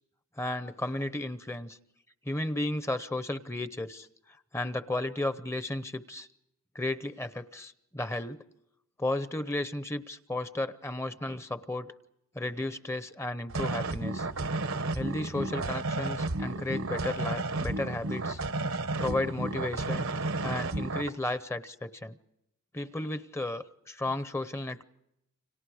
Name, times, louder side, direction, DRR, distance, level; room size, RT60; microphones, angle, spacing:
voice 1, 0.4-1.8 2.2-6.3 6.7-8.4 9.0-11.9 12.3-14.3 14.9-18.4 19.0-20.1 20.4-22.2 22.7-24.8, left 2 dB, 15° left, 12 dB, 0.8 m, -34 dB
sound 1, 13.5-21.1, right 2 dB, 70° right, 1.0 m, -32 dB
30.0 x 26.0 x 4.9 m, 0.85 s
head